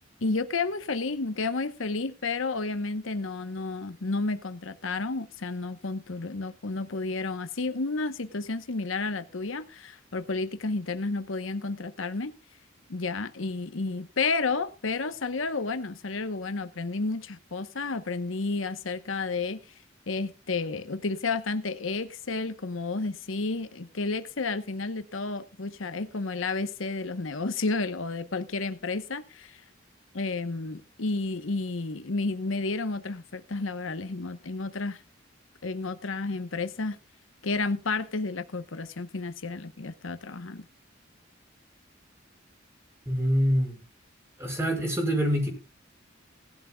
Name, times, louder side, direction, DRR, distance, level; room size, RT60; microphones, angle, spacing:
voice 1, 0.2-12.3 12.9-19.6 20.1-29.6 30.1-35.0 35.6-37.0 37.4-40.6, left 3 dB, 85° left, 11 dB, 1.0 m, -31 dB
voice 2, 43.1-43.8 44.4-45.5, equal, 15° right, 2 dB, 5.1 m, -25 dB
19.0 x 11.5 x 2.3 m, 0.31 s
head